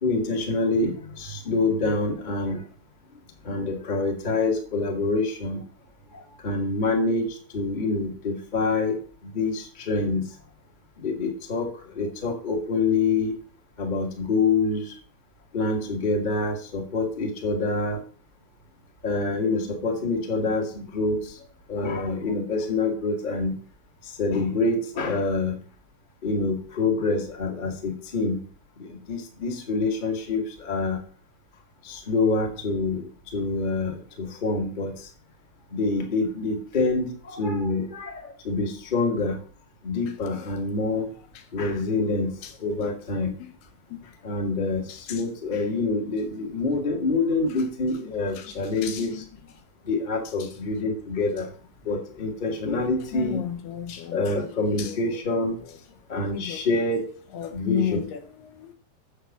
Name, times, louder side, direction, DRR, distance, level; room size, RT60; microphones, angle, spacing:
voice 1, 0.0-2.6 3.4-5.6 6.1-10.3 11.0-13.4 13.8-14.9 15.5-18.0 19.0-21.4 21.7-23.6 24.0-25.6 26.2-28.4 28.8-31.0 31.8-35.1 35.7-39.4 39.8-41.1 41.5-43.3 44.2-49.2 49.8-51.5 51.8-53.4 54.1-55.6 56.1-57.0 57.5-58.0, left 3 dB, 25° left, 2 dB, 1.0 m, -26 dB
voice 2, 44.9-45.2 47.0-47.1 47.4-47.6 48.0-49.2 50.4-50.5 53.1-55.5 56.3-56.8 57.3-58.7, left 10 dB, 80° left, 6 dB, 3.3 m, -34 dB
8.0 x 7.5 x 7.3 m, 0.43 s
omnidirectional pair, 4.6 m